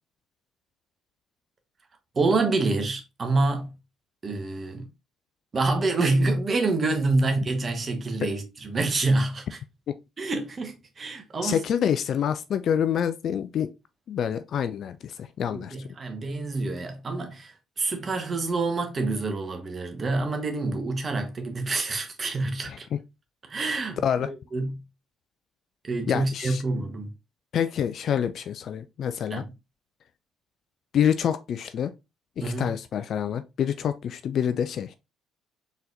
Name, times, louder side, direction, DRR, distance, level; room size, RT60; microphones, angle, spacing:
voice 1, 2.1-3.7 4.2-4.8 5.5-9.6 10.2-11.6 15.5-22.9 23.5-24.8 25.8-27.1 29.3-29.4 32.4-32.7, right 3 dB, 40° right, 1.2 m, -27 dB
voice 2, 11.4-13.7 14.1-15.8 22.7-22.8 23.6-23.8 24.0-24.3 26.1-26.6 27.5-29.4 30.9-31.9 32.4-34.9, left 8 dB, 60° left, 0.3 m, -27 dB
4.0 x 4.0 x 2.6 m
hypercardioid pair, 55°, 0 cm